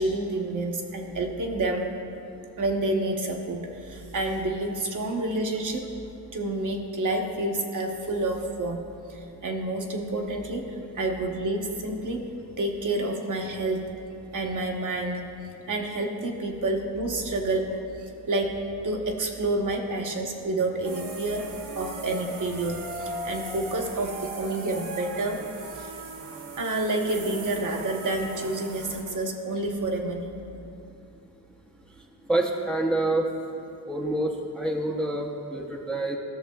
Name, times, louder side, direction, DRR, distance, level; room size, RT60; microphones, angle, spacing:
voice 1, 0.0-1.9 2.6-5.9 6.3-10.7 10.9-12.3 12.6-13.9 14.3-15.2 15.7-21.5 21.7-25.4 26.6-30.3, right 2 dB, 45° right, 2 dB, 1.0 m, -29 dB
sound 1, 20.8-29.0, right 2 dB, 85° right, 1.2 m, -38 dB
voice 2, 32.0-33.3 33.9-36.2, right 2 dB, ahead, 0 dB, 0.7 m, -27 dB
15.0 x 6.5 x 2.3 m, 2.8 s
cardioid pair, 90°, 42 cm